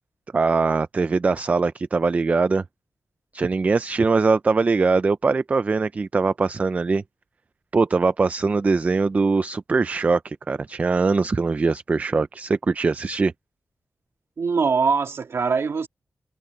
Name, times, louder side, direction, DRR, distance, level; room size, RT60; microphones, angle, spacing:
voice 1, 0.3-2.6 3.3-7.0 7.7-13.3, right 4 dB, 30° right, 0.4 m, -21 dB
voice 2, 14.4-15.9, right 5 dB, 55° right, 2.1 m, -22 dB
wide cardioid pair, 170°, 5 cm